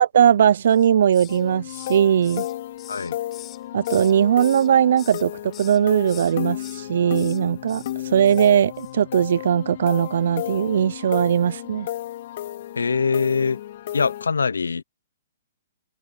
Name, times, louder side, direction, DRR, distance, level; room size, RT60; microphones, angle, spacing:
voice 1, 0.0-2.5 3.7-7.8 8.1-11.9, right 9 dB, 65° right, 0.6 m, -19 dB
Hiss, 0.7-1.4 1.7-4.1 4.4-5.2 5.5-5.8 6.1-6.8 7.1-7.4 7.7-7.9 8.2-8.5 8.7-8.9, left 12 dB, 25° left, 5.9 m, -44 dB
sound 1, 1.3-14.3, left 13 dB, 55° left, 4.1 m, -33 dB
voice 2, 12.8-13.6 13.9-14.8, left 5 dB, 85° left, 0.8 m, -23 dB
hypercardioid pair, 130°, 0 cm